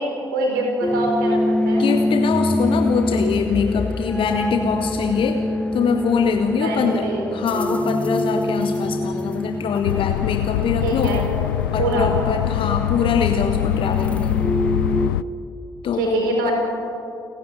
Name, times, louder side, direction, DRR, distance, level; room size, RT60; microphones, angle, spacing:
voice 1, 0.0-1.8 6.5-7.3 10.8-11.2 11.8-12.1 16.0-16.5, right 2 dB, 75° right, 1 dB, 4.3 m, -24 dB
sound 1, 0.8-15.1, left 1 dB, 10° left, 1.2 m, -25 dB
voice 2, 1.8-5.4 5.7-11.2 11.7-14.3 15.8-16.5, left 6 dB, 50° left, 6 dB, 1.3 m, -23 dB
sound 2, 9.8-15.2, left 13 dB, 75° left, 0.4 m, -23 dB
29.5 x 11.0 x 9.1 m, 2.6 s
figure-of-eight pair, 40°, 11 cm